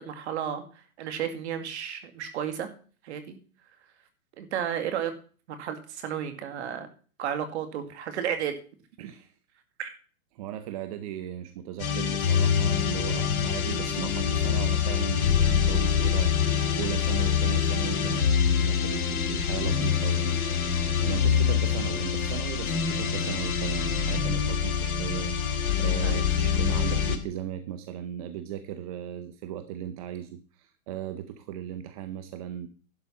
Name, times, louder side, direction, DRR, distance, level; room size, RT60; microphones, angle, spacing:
voice 1, 0.0-2.7 3.0-3.4 4.4-5.1 5.5-6.9 7.2-8.6 9.8-9.9 26.0-26.2, right 9 dB, 50° right, 8 dB, 2.2 m, -33 dB
voice 2, 9.0-9.3 10.3-18.3 18.5-20.5 21.0-32.7, right 10 dB, 25° right, 9 dB, 0.6 m, -37 dB
sound 1, 11.8-27.2, left 7 dB, 75° left, 2.1 m, -25 dB
11.5 x 5.2 x 7.3 m, 0.39 s
hypercardioid pair, 150°, 44 cm